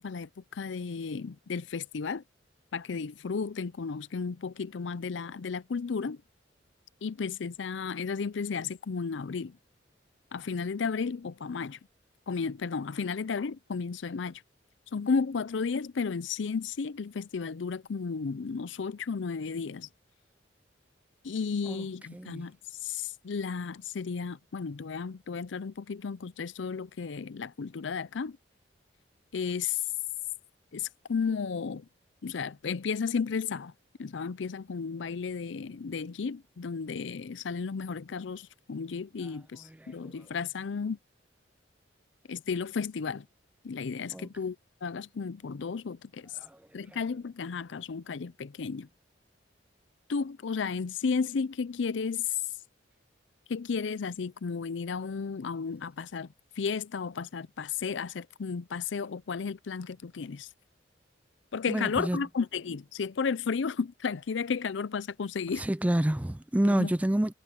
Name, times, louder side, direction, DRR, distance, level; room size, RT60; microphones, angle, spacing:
voice 1, 0.0-2.2 2.7-6.2 7.0-9.6 10.3-11.8 12.3-14.4 14.9-19.9 21.2-22.6 22.8-28.4 29.3-29.8 30.7-31.9 32.2-33.7 34.0-41.0 42.3-43.3 43.6-44.6 44.8-46.3 46.7-48.9 50.1-52.4 53.5-56.3 56.6-60.5 61.5-65.6 66.6-66.9, left 5 dB, 80° left, 0.5 m, -33 dB
voice 2, 22.1-22.5 39.8-39.9 44.1-44.3 46.4-46.6 61.7-62.2 65.6-67.3, right 1 dB, 10° right, 0.4 m, -28 dB
head